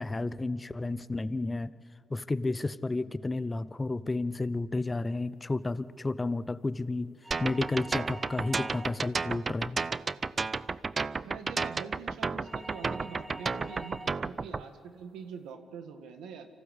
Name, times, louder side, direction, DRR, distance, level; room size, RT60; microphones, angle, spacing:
voice 1, 0.0-1.7 2.1-7.1 7.4-9.8, left 2 dB, 20° left, 15 dB, 0.7 m, -32 dB
sound 1, 7.2-9.2 12.4-14.2, right 1 dB, 10° right, 1.1 m, -46 dB
sound 2, 7.3-14.6, right 4 dB, 35° right, 0.5 m, -32 dB
voice 2, 11.2-16.5, right 6 dB, 85° right, 7 dB, 1.9 m, -44 dB
25.5 x 15.0 x 8.3 m, 2.6 s
cardioid pair, 90°, 0 cm